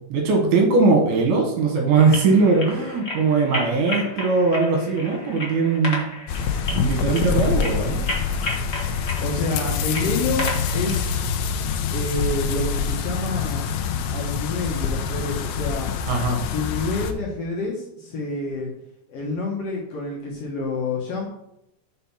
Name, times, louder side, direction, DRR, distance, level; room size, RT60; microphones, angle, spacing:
voice 1, 0.0-6.1 6.7-8.0 16.1-16.4, right 4 dB, 75° right, 1 dB, 2.9 m, -20 dB
sound 1, 1.9-11.1, left 2 dB, 40° left, 0.9 m, -33 dB
sound 2, 6.3-17.1, left 6 dB, 80° left, 1.8 m, -25 dB
voice 2, 9.2-11.1 11.9-13.6 14.1-15.9 16.5-18.7 19.1-21.3, left 2 dB, 60° left, -2 dB, 1.8 m, -28 dB
5.7 x 4.5 x 5.7 m, 0.80 s
omnidirectional pair, 3.7 m